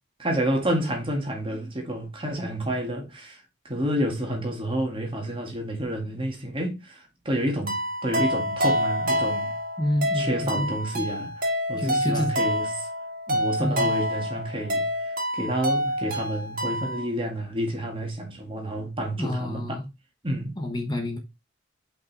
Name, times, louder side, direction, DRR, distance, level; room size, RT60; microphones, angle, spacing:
voice 1, 0.2-9.5 10.1-12.9 13.3-19.8 20.2-20.6, equal, 25° right, 1.9 m, -29 dB
sound 1, 7.7-17.1, equal, 45° right, 2.2 m, -27 dB
voice 2, 9.8-10.7 11.8-12.3 13.6-13.9 19.2-19.8 20.6-21.2, left 1 dB, 20° left, 1.1 m, -28 dB
5.4 x 5.2 x 4.0 m
head